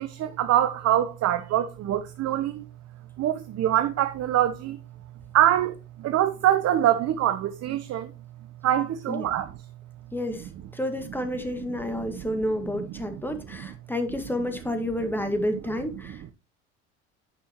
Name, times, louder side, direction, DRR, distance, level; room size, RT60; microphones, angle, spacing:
voice 1, 0.0-2.7 3.2-4.8 5.3-8.1 8.6-9.5 12.0-12.4 12.7-12.8 13.1-13.2 13.6-13.7, right 12 dB, 45° right, 0.7 m, -24 dB
voice 2, 10.1-16.3, left 1 dB, 5° left, 1.7 m, -30 dB
9.9 x 5.5 x 2.9 m
hypercardioid pair, 75°, 35 cm